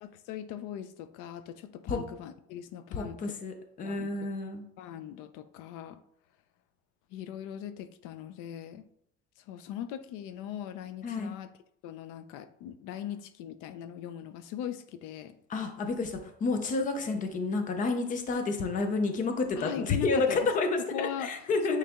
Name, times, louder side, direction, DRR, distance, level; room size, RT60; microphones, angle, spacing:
voice 1, 0.0-3.3 3.8-4.1 4.8-6.0 7.1-8.9 9.4-11.5 11.8-15.4 19.6-20.5 20.9-21.3 21.7-21.8, left 10 dB, 70° left, 11 dB, 0.5 m, -40 dB
voice 2, 2.9-4.6 11.0-11.3 15.5-21.8, left 3 dB, 25° left, 6 dB, 0.6 m, -30 dB
8.7 x 3.2 x 3.6 m, 0.69 s
cardioid pair, 180°, 32 cm